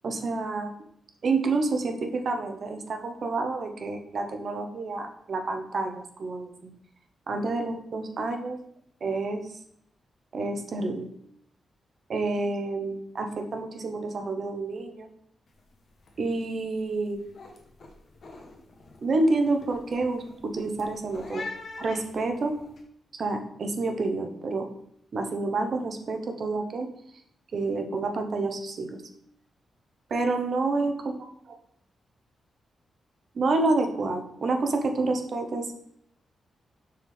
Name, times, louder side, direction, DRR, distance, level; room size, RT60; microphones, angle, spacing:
voice 1, 0.0-0.7 1.2-6.7 7.3-8.6 9.0-9.4 10.3-11.1 12.1-15.1 16.2-17.3 19.0-21.5 21.8-22.6 23.2-24.7 25.1-26.9 27.5-29.0 30.1-31.0 33.4-35.7, right 3 dB, 60° right, 5 dB, 0.6 m, -28 dB
sound 1, 15.5-15.7 16.0-16.4 16.8-22.8, left 3 dB, 60° left, 0.8 m, -44 dB
4.6 x 3.4 x 3.1 m, 0.71 s
cardioid pair, 70°, 0 cm